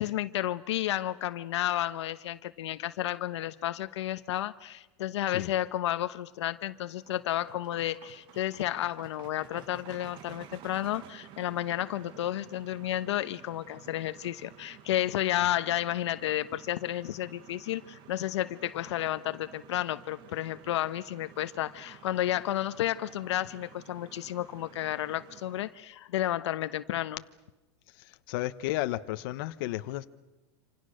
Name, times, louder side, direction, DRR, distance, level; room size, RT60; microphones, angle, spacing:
voice 1, 0.0-27.2, left 13 dB, 75° left, 1.0 m, -32 dB
sound 1, 6.5-25.8, right 9 dB, 35° right, 1.3 m, -53 dB
voice 2, 28.3-30.0, left 16 dB, 50° left, 1.1 m, -32 dB
27.0 x 27.0 x 6.5 m
supercardioid pair, 155°, 15 cm